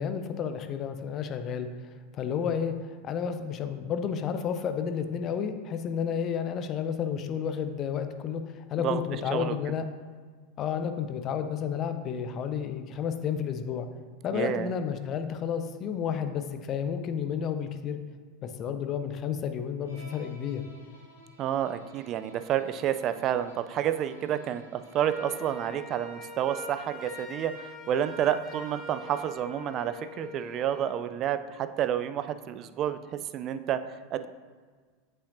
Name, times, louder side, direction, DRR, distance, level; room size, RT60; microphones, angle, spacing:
voice 1, 0.0-9.8 10.6-13.9 14.2-18.0 18.4-20.7, left 7 dB, 35° left, 9 dB, 0.5 m, -31 dB
voice 2, 14.3-14.7 21.4-34.3, right 10 dB, 40° right, 11 dB, 0.3 m, -30 dB
Bowed string instrument, 19.8-25.8, right 1 dB, 80° left, 1.4 m, -54 dB
Wind instrument woodwind instrument, 24.9-31.0, equal, 15° left, 1.7 m, -43 dB
8.0 x 5.5 x 2.6 m, 1.5 s
figure-of-eight pair, 85°, 0 cm